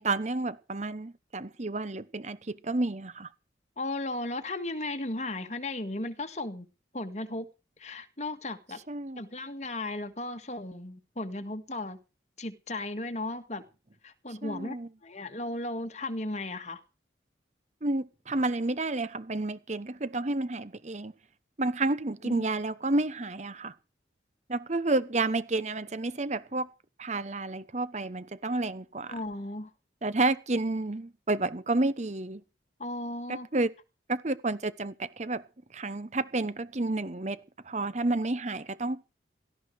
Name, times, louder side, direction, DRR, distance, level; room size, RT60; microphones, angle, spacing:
voice 1, 0.0-3.3 8.9-9.2 14.4-14.9 17.8-21.1 21.6-23.7 24.5-26.7 27.0-29.1 30.0-32.4 33.3-33.7 34.1-35.4 35.7-39.0, right 2 dB, 40° right, 1.0 m, -30 dB
voice 2, 3.8-6.6 6.9-7.5 7.8-8.8 9.2-12.0 12.4-13.6 14.0-14.8 15.0-16.8 22.2-22.4 29.1-29.7 32.8-33.5, left 2 dB, 40° left, 1.7 m, -35 dB
17.5 x 14.0 x 4.8 m
head